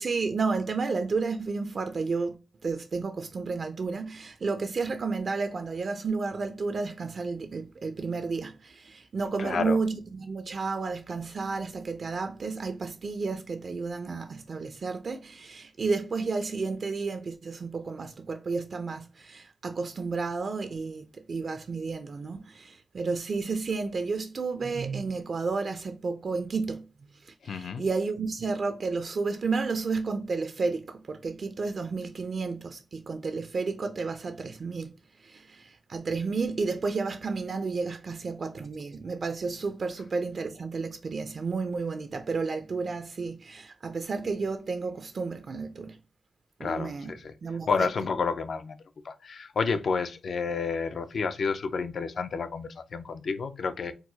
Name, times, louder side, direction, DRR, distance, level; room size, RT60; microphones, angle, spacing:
voice 1, 0.0-2.3 2.6-26.9 27.4-34.9 35.2-46.0 46.6-47.1 47.4-47.9, right 4 dB, 50° right, 0.4 m, -31 dB
voice 2, 9.4-9.8 27.4-27.8 46.6-47.3 47.7-48.8 49.0-53.9, left 5 dB, 65° left, 0.4 m, -30 dB
4.5 x 2.0 x 2.7 m
wide cardioid pair, 130°, 0 cm